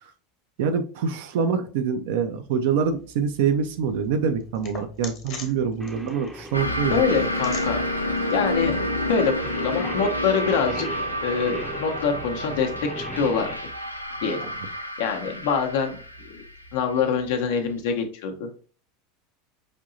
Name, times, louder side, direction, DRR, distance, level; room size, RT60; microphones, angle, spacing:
voice 1, 0.6-7.0 14.4-14.5, right 6 dB, 55° right, 7 dB, 0.5 m, -25 dB
sound 1, 2.8-9.6, left 5 dB, 40° left, 1.1 m, -45 dB
Singing, 5.8-13.5, equal, 5° right, 0.6 m, -39 dB
sound 2, 6.5-17.7, left 1 dB, 90° left, 0.3 m, -29 dB
voice 2, 6.9-7.8 8.3-8.8 9.1-13.5 14.2-14.5 15.0-16.4 16.7-18.6, left 6 dB, 55° left, 5 dB, 0.7 m, -25 dB
5.0 x 2.7 x 2.6 m, 0.40 s
figure-of-eight pair, 80°, 0 cm